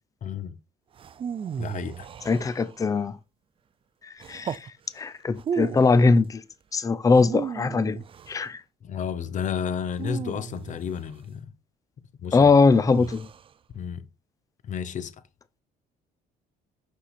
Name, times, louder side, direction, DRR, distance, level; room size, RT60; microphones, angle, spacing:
voice 1, 0.2-0.6 1.6-2.1 8.8-11.5 12.2-12.5 13.7-14.1 14.6-15.1, left 7 dB, 45° left, 0.8 m, -31 dB
sound 1, 1.0-3.0 4.2-4.7 5.3-6.0 7.1-8.4 9.9-11.1 12.7-13.5, right 7 dB, 30° right, 0.4 m, -35 dB
voice 2, 2.3-3.1 4.3-4.6 5.0-6.4 6.7-8.0 8.3-8.6 12.3-13.3, left 4 dB, 20° left, 0.6 m, -21 dB
5.7 x 5.6 x 4.2 m
cardioid pair, 110°, 17 cm